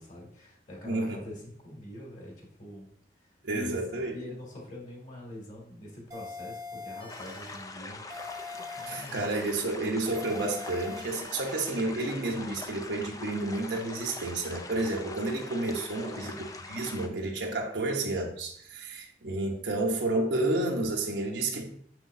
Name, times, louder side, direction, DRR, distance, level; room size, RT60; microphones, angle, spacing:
voice 1, 0.0-2.9 3.2-8.0 8.7-9.3 16.0-16.5, left 1 dB, 45° left, -2 dB, 2.4 m, -44 dB
voice 2, 0.8-1.2 3.4-4.1 8.9-16.4 16.7-21.7, right 2 dB, 80° right, 0 dB, 1.0 m, -30 dB
sound 1, 6.1-7.7 8.1-9.7 10.1-11.7, left 3 dB, 20° right, 0.8 m, -43 dB
sound 2, 7.1-17.1, left 3 dB, 20° left, 0.5 m, -43 dB
6.9 x 6.1 x 2.7 m, 0.62 s
head